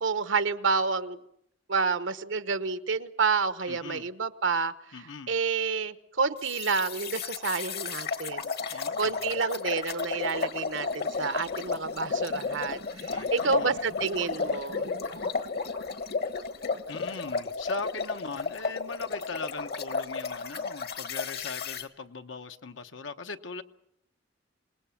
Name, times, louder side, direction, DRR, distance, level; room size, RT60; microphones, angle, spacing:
voice 1, 0.0-1.2 1.7-4.7 5.3-14.9, right 5 dB, 80° right, 1.1 m, -29 dB
voice 2, 3.7-4.1 4.9-5.3 8.7-9.4 13.1-13.9 16.9-23.6, left 4 dB, 75° left, 1.1 m, -40 dB
sound 1, 6.4-21.8, left 4 dB, 55° left, 1.4 m, -33 dB
27.0 x 19.5 x 7.2 m
head